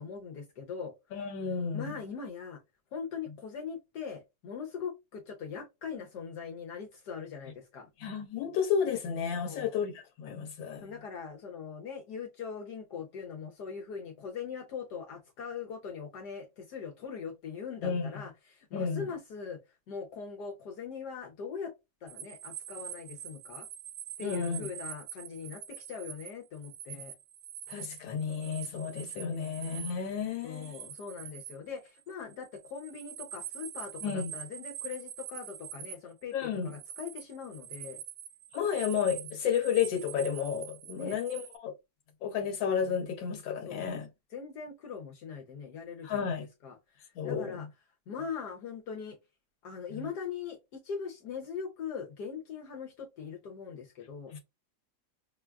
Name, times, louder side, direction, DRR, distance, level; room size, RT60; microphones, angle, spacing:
voice 1, 0.0-1.5 1.7-2.6 2.9-7.9 9.4-9.7 10.8-19.6 19.9-21.7 22.0-23.7 24.2-27.1 29.3-29.5 30.4-38.0 40.9-41.2 43.7-43.9 44.3-47.7 48.1-49.2 49.6-54.3, left 6 dB, 65° left, 1.2 m, -41 dB
voice 2, 1.1-1.8 8.0-10.9 17.8-18.1 18.7-19.0 24.2-24.7 27.7-30.8 34.0-34.3 36.3-36.7 38.5-41.7 42.2-44.1 46.0-46.5 47.2-47.6 54.3-54.4, left 7 dB, 85° left, 1.4 m, -32 dB
sound 1, 22.1-35.9 36.3-41.6, right 10 dB, 90° right, 1.3 m, -45 dB
5.5 x 2.3 x 2.2 m
omnidirectional pair, 2.0 m